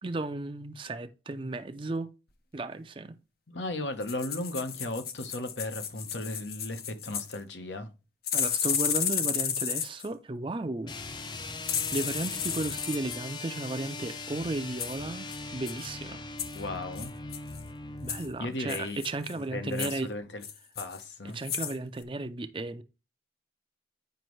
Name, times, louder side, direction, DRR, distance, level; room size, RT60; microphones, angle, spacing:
voice 1, 0.0-2.1 2.5-3.2 8.3-11.0 11.9-15.3 15.5-16.2 18.0-20.1 21.2-22.8, right 2 dB, 30° right, 0.5 m, -34 dB
voice 2, 3.5-7.9 16.5-17.1 18.4-19.0 19.5-20.4 20.8-21.4, left 2 dB, 80° left, 1.1 m, -36 dB
sound 1, 4.0-7.4 8.3-10.1 11.6-13.2 14.8-15.0 15.3-15.4 15.7-15.9 16.4-16.6 17.0-17.6 18.1-18.3 18.7-19.3 19.7-20.0 20.4-21.1 21.4-21.8 22.0-22.1, left 8 dB, 55° left, 0.7 m, -33 dB
sound 2, 10.8-18.4, left 3 dB, 25° left, 0.5 m, -40 dB
9.2 x 5.2 x 3.1 m
head